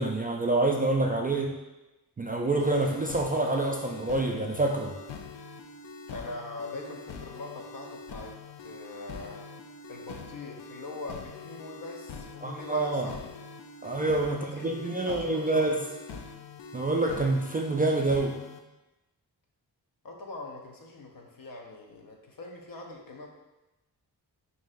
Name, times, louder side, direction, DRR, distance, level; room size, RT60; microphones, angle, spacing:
voice 1, 0.0-1.6 2.2-4.9 12.4-13.1 13.8-15.8 16.7-18.4, right 2 dB, 20° right, 1 dB, 0.3 m, -27 dB
sound 1, 2.6-18.6, left 4 dB, 80° left, 0.5 m, -44 dB
voice 2, 6.1-9.5 9.9-13.4 14.3-15.8 20.0-23.3, left 2 dB, 50° left, 1 dB, 0.8 m, -42 dB
5.4 x 2.8 x 2.5 m, 1.0 s
cardioid pair, 50°, 42 cm